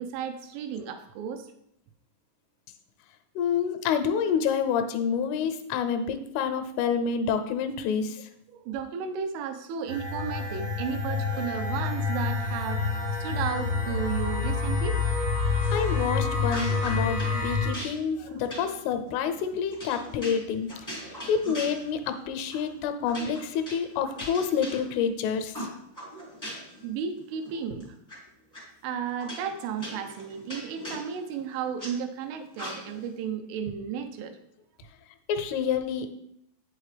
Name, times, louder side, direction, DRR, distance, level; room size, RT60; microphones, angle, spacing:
voice 1, 0.0-1.5 8.5-15.0 18.2-18.4 26.8-27.9 28.8-34.4, right 7 dB, 80° right, 7 dB, 3.1 m, -34 dB
voice 2, 3.4-8.3 15.7-20.7 21.3-25.7 35.3-36.1, left 7 dB, 85° left, 7 dB, 3.1 m, -28 dB
sound 1, 9.9-17.7, left 4 dB, 30° right, 0.7 m, -28 dB
sound 2, 15.6-16.1 16.4-17.4 17.7-22.2 22.5-22.7 23.0-25.1 25.5-26.8 27.2-28.2 28.5-28.6 29.2-31.9 32.5-33.1, equal, 15° left, 0.6 m, -40 dB
8.4 x 8.1 x 3.4 m, 0.74 s
omnidirectional pair, 5.8 m